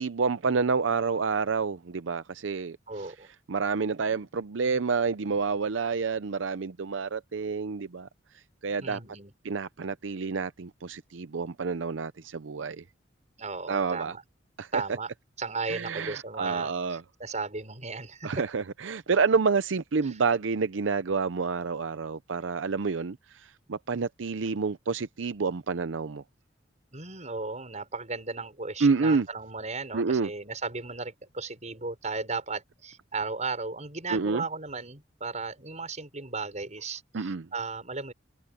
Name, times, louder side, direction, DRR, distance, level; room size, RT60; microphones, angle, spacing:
voice 1, 0.0-3.1 3.5-8.1 8.6-9.0 9.4-12.8 13.7-14.1 14.6-14.7 15.7-17.0 18.2-26.2 28.8-29.3 29.9-30.3 34.1-34.4 37.1-37.5, right 4 dB, 85° right, 0.6 m, -28 dB
voice 2, 2.9-3.3 8.8-9.3 13.4-14.2 14.7-15.1 15.4-18.4 26.9-38.1, right 4 dB, 40° right, 6.3 m, -35 dB
head